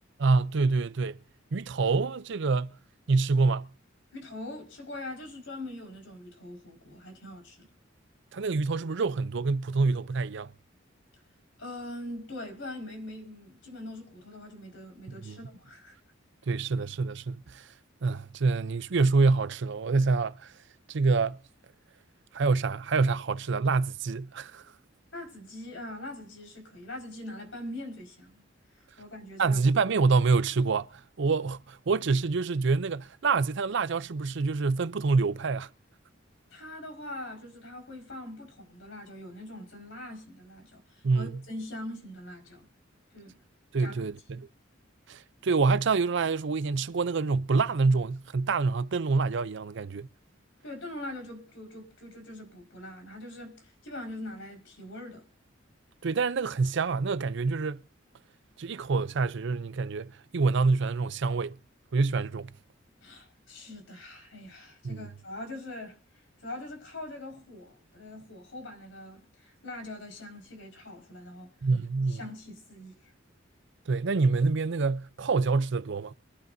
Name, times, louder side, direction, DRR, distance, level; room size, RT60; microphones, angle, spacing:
voice 1, 0.2-1.2 1.5-2.8 3.1-3.7 8.3-10.5 15.1-15.4 16.5-17.7 18.0-20.5 20.9-21.4 22.3-24.6 29.4-35.7 41.0-41.3 43.7-44.5 45.1-50.1 56.0-57.8 58.6-61.6 61.9-62.5 64.8-65.1 71.6-72.2 73.9-76.1, right 4 dB, 65° right, 0.6 m, -26 dB
voice 2, 4.1-7.7 11.6-15.9 25.1-28.4 29.0-29.6 36.5-42.7 43.1-43.4 43.8-43.9 44.4-44.5 50.6-55.3 63.0-66.0 66.4-71.5 72.1-73.1, left 1 dB, 70° left, 5.0 m, -42 dB
24.5 x 12.0 x 2.7 m
head